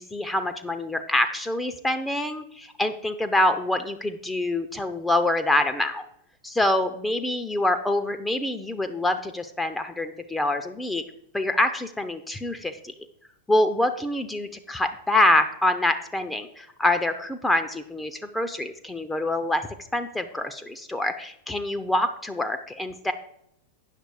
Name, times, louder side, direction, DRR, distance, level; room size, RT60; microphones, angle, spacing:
voice 1, 0.0-6.1 6.4-11.0 11.3-12.9 13.5-19.7 19.9-23.1, left 1 dB, 5° left, 8 dB, 0.6 m, -25 dB
9.1 x 6.5 x 4.8 m, 0.74 s
figure-of-eight pair, 90°, 0 cm